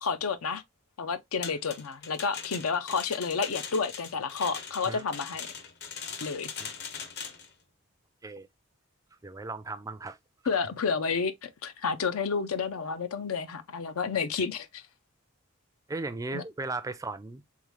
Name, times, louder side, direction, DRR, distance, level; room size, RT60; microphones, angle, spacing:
voice 1, 0.0-0.6 1.0-5.5 6.2-6.5 10.5-14.8 16.3-16.4, left 5 dB, 80° left, 0.6 m, -30 dB
sound 1, 1.4-7.5, left 6 dB, 50° left, 0.8 m, -40 dB
voice 2, 9.2-10.2 10.5-10.6 15.9-17.5, right 3 dB, 15° right, 0.3 m, -36 dB
3.7 x 3.5 x 3.1 m
head